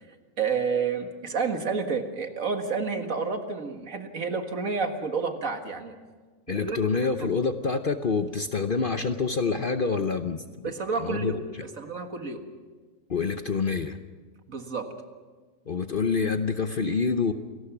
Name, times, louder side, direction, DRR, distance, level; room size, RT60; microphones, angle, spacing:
voice 1, 0.4-6.0 6.5-6.8 7.2-7.3 10.6-11.4 11.8-12.4 14.5-14.9, right 5 dB, 65° right, 6 dB, 2.1 m, -29 dB
voice 2, 6.5-10.7 11.0-11.6 13.1-14.0 15.7-17.3, left 5 dB, 45° left, 8 dB, 0.9 m, -27 dB
27.5 x 18.5 x 6.0 m, 1.4 s
omnidirectional pair, 1.6 m